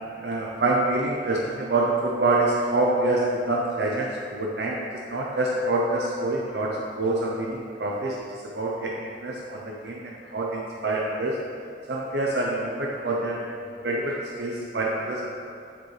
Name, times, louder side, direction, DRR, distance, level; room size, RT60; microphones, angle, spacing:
voice 1, 0.2-8.2 8.5-11.4 11.9-15.3, right 2 dB, 70° right, -2 dB, 0.6 m, -26 dB
7.1 x 6.9 x 3.2 m, 2.4 s
head